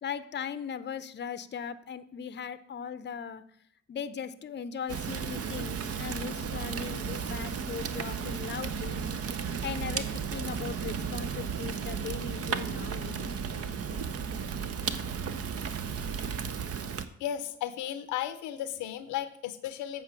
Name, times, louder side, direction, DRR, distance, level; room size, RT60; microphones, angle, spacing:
voice 1, 0.0-3.4 3.9-9.0 9.6-13.3, left 7 dB, 35° left, 14 dB, 0.6 m, -38 dB
Fire, 4.9-17.0, right 6 dB, 55° right, 0.8 m, -34 dB
voice 2, 17.2-20.0, left 11 dB, 80° left, 12 dB, 0.7 m, -35 dB
8.0 x 4.9 x 6.4 m, 0.65 s
hypercardioid pair, 50°, 30 cm